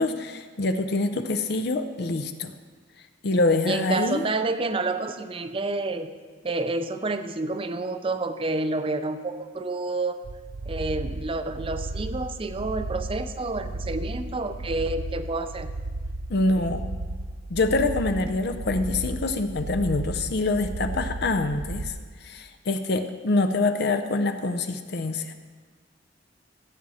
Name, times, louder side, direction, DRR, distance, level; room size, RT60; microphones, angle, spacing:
voice 1, 0.0-2.5 3.2-4.3 16.3-16.8 17.5-21.9 22.2-25.3, left 2 dB, 60° left, 8 dB, 0.6 m, -25 dB
voice 2, 3.7-6.1 6.4-10.2 10.7-15.7, right 2 dB, 30° right, 10 dB, 0.5 m, -29 dB
sound 1, 10.2-21.9, right 2 dB, 70° right, 0.6 m, -34 dB
16.0 x 7.5 x 4.2 m, 1.5 s
head